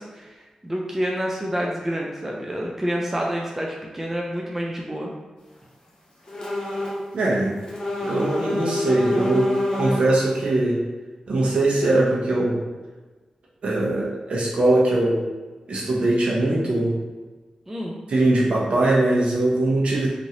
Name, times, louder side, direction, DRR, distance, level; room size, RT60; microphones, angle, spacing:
voice 1, 0.0-5.1 17.7-18.0, equal, 15° right, -1 dB, 0.3 m, -28 dB
sound 1, 6.3-7.0 7.3-10.2, left 1 dB, 35° left, 0.7 m, -28 dB
voice 2, 7.1-7.5 8.0-10.8 11.3-12.6 13.6-15.2 15.7-16.9 18.1-20.1, right 2 dB, 60° right, -4 dB, 0.8 m, -21 dB
3.0 x 2.6 x 2.8 m, 1.3 s
wide cardioid pair, 130°, 2 cm